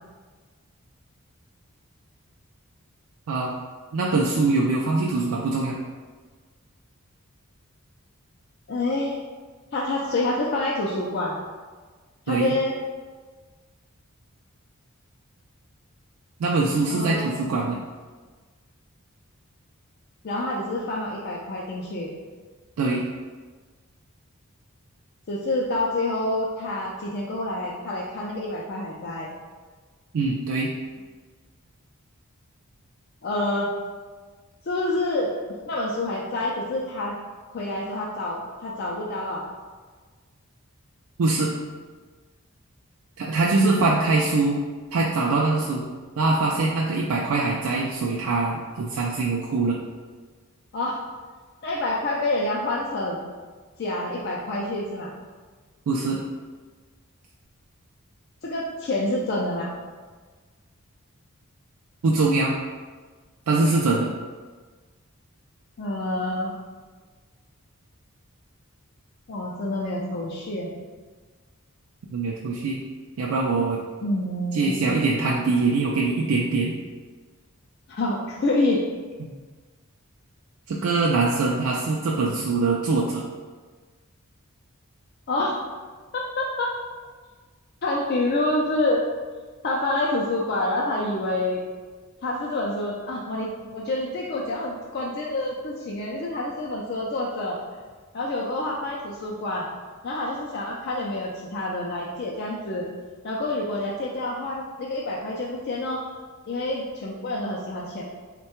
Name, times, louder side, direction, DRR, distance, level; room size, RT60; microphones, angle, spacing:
voice 1, 3.9-5.8 12.3-12.5 16.4-17.8 22.8-23.0 30.1-30.7 41.2-41.5 43.2-44.6 44.9-45.9 46.2-49.8 55.9-56.2 62.0-62.5 63.5-64.1 72.1-72.8 73.2-73.8 74.5-76.7 79.2-79.3 80.7-83.2, right 3 dB, 80° right, -2 dB, 0.4 m, -23 dB
voice 2, 8.7-9.2 9.7-11.4 12.3-12.7 16.9-17.3 20.2-22.1 25.3-29.3 33.2-33.7 34.7-35.3 35.7-37.1 37.5-39.5 50.7-51.0 51.6-53.2 53.8-55.1 58.4-59.8 65.8-66.5 69.3-70.7 74.0-74.8 77.9-78.8 85.3-85.6 86.1-86.8 87.8-89.0 89.6-91.6 92.2-97.6 98.1-99.7 100.0-102.9 103.2-106.0 106.5-108.0, left 2 dB, 45° left, -4 dB, 0.4 m, -27 dB
3.6 x 2.2 x 4.3 m, 1.4 s
head